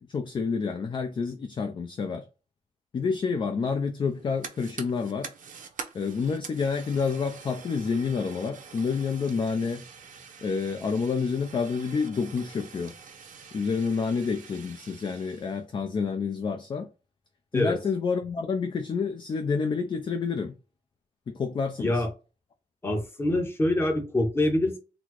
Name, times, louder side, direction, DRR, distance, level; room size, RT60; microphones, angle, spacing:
voice 1, 0.1-2.3 2.9-5.3 5.9-9.8 10.4-12.9 13.5-16.9 17.5-20.5 21.3-22.0, left 5 dB, 35° left, 0.4 m, -28 dB
Fire, 4.0-15.6, right 6 dB, 75° right, 0.7 m, -45 dB
voice 2, 21.8-22.1 22.8-24.8, left 1 dB, 20° left, 0.8 m, -25 dB
4.0 x 2.0 x 2.9 m
wide cardioid pair, 150°, 14 cm